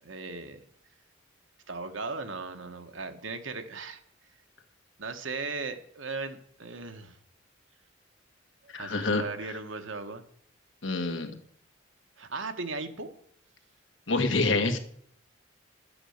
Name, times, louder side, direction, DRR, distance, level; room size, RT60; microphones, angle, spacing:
voice 1, 0.0-0.6 1.7-4.0 5.0-7.2 8.6-10.2 12.2-13.1, right 3 dB, 75° right, 7 dB, 1.4 m, -37 dB
voice 2, 8.7-9.2 10.8-11.4 14.1-14.8, left 3 dB, 75° left, 5 dB, 1.7 m, -27 dB
12.0 x 8.7 x 6.6 m, 0.64 s
head